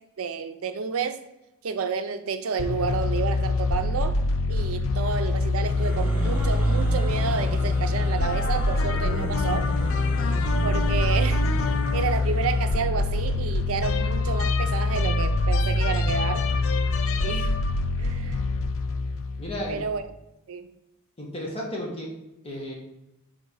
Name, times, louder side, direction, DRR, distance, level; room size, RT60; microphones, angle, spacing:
voice 1, 0.2-1.2 1.6-4.2 4.5-9.7 10.6-11.5 11.9-16.5 17.2-17.5 18.0-18.4 19.7-20.0 20.5-20.7, right 5 dB, 75° right, 0.5 m, -30 dB
sound 1, 2.6-19.9, left 2 dB, 65° left, 0.4 m, -24 dB
sound 2, 5.5-12.9, equal, 10° right, 1.1 m, -37 dB
voice 2, 19.4-19.8 21.2-22.1 22.4-22.7, left 1 dB, 25° left, 1.1 m, -33 dB
5.0 x 3.6 x 5.4 m
head